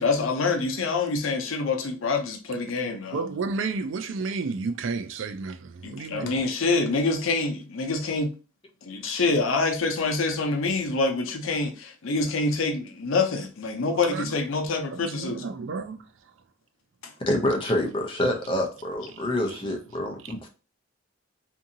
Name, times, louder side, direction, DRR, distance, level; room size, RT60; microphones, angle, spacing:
voice 1, 0.0-3.2 5.8-8.3 8.8-15.5 17.0-17.1, left 3 dB, 85° left, 0.6 m, -26 dB
voice 2, 3.1-6.3 14.1-14.3 15.1-16.0 20.0-20.3, right 4 dB, 75° right, 0.4 m, -31 dB
voice 3, 17.3-20.5, left 1 dB, 25° left, 0.5 m, -27 dB
2.7 x 2.6 x 2.6 m
head